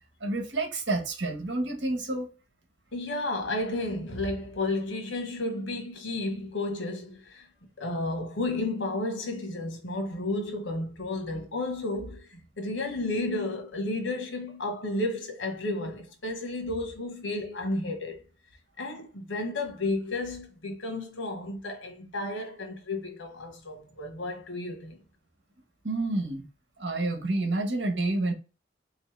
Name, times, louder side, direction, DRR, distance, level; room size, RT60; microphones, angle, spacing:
voice 1, 0.2-2.3 25.8-26.4 26.8-28.3, right 2 dB, 70° right, 1.3 m, -29 dB
voice 2, 2.9-7.4 7.8-18.2 18.8-25.0, left 2 dB, 90° left, 1.2 m, -32 dB
3.7 x 3.1 x 3.3 m
head